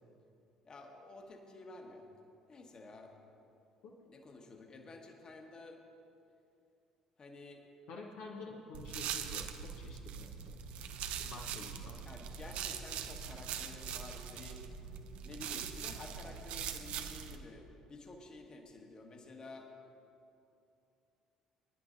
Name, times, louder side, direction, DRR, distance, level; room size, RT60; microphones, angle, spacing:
voice 1, 0.6-2.1 2.5-3.1 4.0-5.8 7.2-7.7 12.0-14.6 15.2-19.7, left 2 dB, 30° left, 2 dB, 1.5 m, -51 dB
voice 2, 7.9-10.6 11.2-12.0, left 3 dB, 60° left, -2 dB, 0.9 m, -49 dB
sound 1, 8.7-17.4, right 8 dB, 55° right, 0.6 m, -42 dB
22.5 x 10.5 x 2.6 m, 2.7 s
figure-of-eight pair, 50°, 2 cm